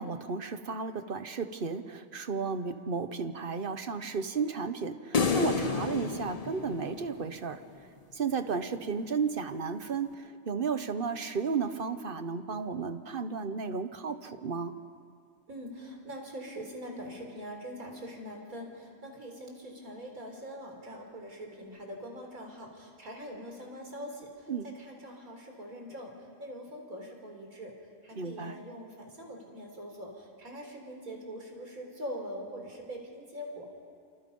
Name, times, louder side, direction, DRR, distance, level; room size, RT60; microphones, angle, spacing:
voice 1, 0.0-7.6 8.1-14.7 24.5-24.6 28.2-28.5, right 5 dB, 45° right, 10 dB, 1.1 m, -33 dB
sound 1, 5.1-7.5, left 4 dB, 35° left, 0.8 m, -30 dB
voice 2, 15.5-24.5 24.7-26.1 26.4-27.7 28.0-33.7, equal, 90° right, 1 dB, 4.4 m, -43 dB
28.0 x 27.0 x 5.5 m, 2.2 s
omnidirectional pair, 1.4 m